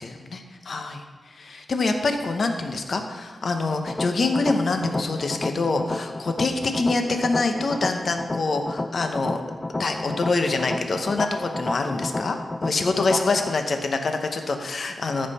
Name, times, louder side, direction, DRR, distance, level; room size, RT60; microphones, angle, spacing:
voice 1, 0.0-9.4 9.8-15.3, left 3 dB, 60° left, 5 dB, 0.9 m, -25 dB
sound 1, 3.9-13.5, left 2 dB, 25° left, 0.4 m, -31 dB
14.0 x 5.6 x 4.2 m, 1.5 s
cardioid pair, 85°, 0 cm